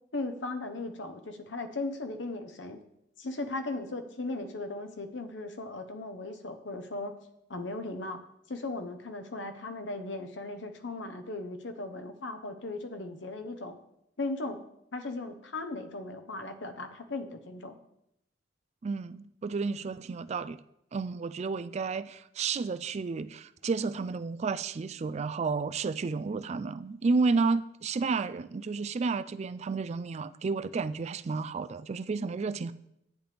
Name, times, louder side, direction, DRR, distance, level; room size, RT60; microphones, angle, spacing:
voice 1, 0.1-2.8 3.2-7.1 7.5-8.2 8.5-13.8 14.2-14.6 14.9-17.8, left 2 dB, 80° left, 7 dB, 1.0 m, -37 dB
voice 2, 18.8-20.6 20.9-32.7, right 4 dB, 35° right, 14 dB, 0.3 m, -31 dB
10.0 x 8.7 x 3.4 m, 0.80 s
head